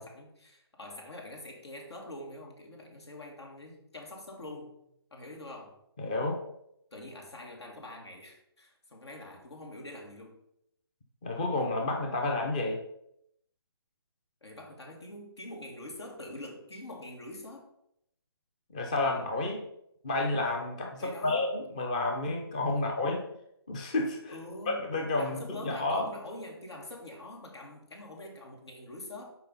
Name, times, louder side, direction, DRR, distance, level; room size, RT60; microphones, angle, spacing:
voice 1, 0.0-4.8 5.1-5.8 6.9-10.4 14.4-17.7 21.0-21.4 22.7-22.9 24.3-24.9 25.2-29.4, left 1 dB, 85° left, 0 dB, 2.4 m, -45 dB
voice 2, 6.0-6.4 11.2-12.8 18.7-19.7 20.0-23.2 23.7-24.3 24.7-26.1, left 2 dB, 15° left, 1 dB, 0.5 m, -30 dB
5.8 x 4.7 x 5.4 m, 0.76 s
hypercardioid pair, 170°, 14 cm